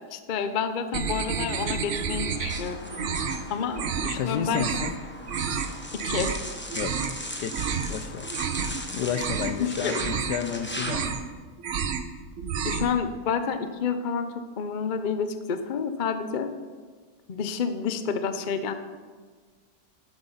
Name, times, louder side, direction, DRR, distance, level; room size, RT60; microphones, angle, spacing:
voice 1, 0.1-3.2 3.5-4.8 6.0-6.3 9.6-10.0 12.6-16.5 17.3-18.7, left 6 dB, 50° left, 9 dB, 0.5 m, -29 dB
sound 1, 0.9-2.6 2.9-3.4 3.7-4.2 4.5-4.9 5.3-5.7 6.0-6.4 6.7-7.2 7.5-7.9 8.2-8.8 9.1-9.6 9.9-10.4 10.7-11.3 11.6-12.1 12.4-12.9, right 7 dB, 55° right, 1.0 m, -30 dB
sound 2, 1.0-11.1, left 1 dB, 10° left, 0.8 m, -39 dB
voice 2, 4.2-4.9 6.8-7.0 7.4-8.4 8.7-11.2, left 8 dB, 80° left, 11 dB, 1.3 m, -32 dB
11.5 x 8.1 x 5.7 m, 1.5 s
omnidirectional pair, 1.8 m